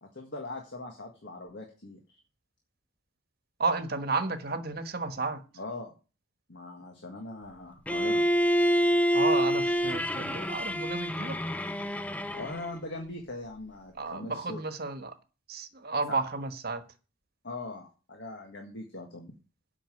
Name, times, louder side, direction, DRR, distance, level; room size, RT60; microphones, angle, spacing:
voice 1, 0.0-2.0 5.6-5.9 6.5-8.2 12.3-14.6 16.1-16.2 17.4-19.3, left 2 dB, 55° left, 1.7 m, -41 dB
voice 2, 3.6-5.4 9.1-11.4 13.9-15.1 15.5-16.8, right 3 dB, 50° right, 1.3 m, -32 dB
Bowed string instrument, 7.9-12.8, equal, 5° left, 0.4 m, -27 dB
8.4 x 5.7 x 7.9 m
head